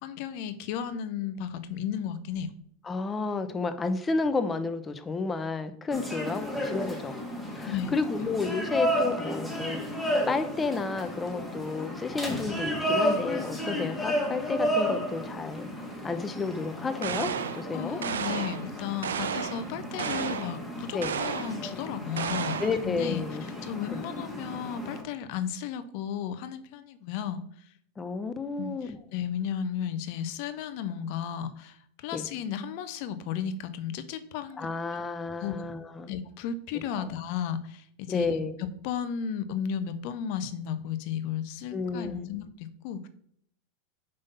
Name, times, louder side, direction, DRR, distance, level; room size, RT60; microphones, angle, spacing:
voice 1, 0.0-2.5 7.6-7.9 17.7-27.4 28.6-34.7 35.4-35.7 36.1-43.1, left 8 dB, 60° left, 12 dB, 0.7 m, -34 dB
voice 2, 2.9-7.1 7.5-9.8 10.3-15.7 16.0-18.0 20.9-21.2 22.6-23.5 23.9-24.0 28.0-29.0 32.1-32.3 34.6-36.1 37.0-37.1 38.1-38.5 41.7-42.3, left 4 dB, 20° left, 10 dB, 0.7 m, -31 dB
sound 1, 5.9-25.0, equal, 5° left, 1.6 m, -33 dB
sound 2, 17.0-17.6 18.0-18.6 19.0-19.6 20.0-20.5 21.0-21.6 22.2-22.8, right 7 dB, 85° right, 0.4 m, -32 dB
5.4 x 3.5 x 5.5 m, 0.67 s
hypercardioid pair, 100°, 0 cm